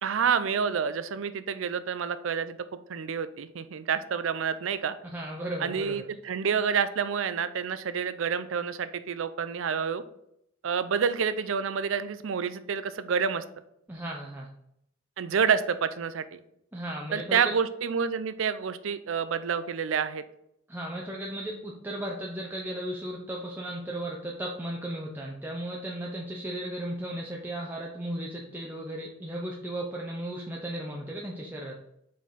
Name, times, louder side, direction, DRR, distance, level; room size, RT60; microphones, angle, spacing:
voice 1, 0.0-2.6 2.9-5.0 5.6-10.0 10.6-13.4 15.2-16.4 17.1-20.2, right 6 dB, 75° right, 12 dB, 0.5 m, -28 dB
voice 2, 5.1-6.0 13.9-14.5 16.7-17.5 20.7-31.8, right 1 dB, 10° right, -2 dB, 0.7 m, -35 dB
5.2 x 4.3 x 5.1 m, 0.76 s
head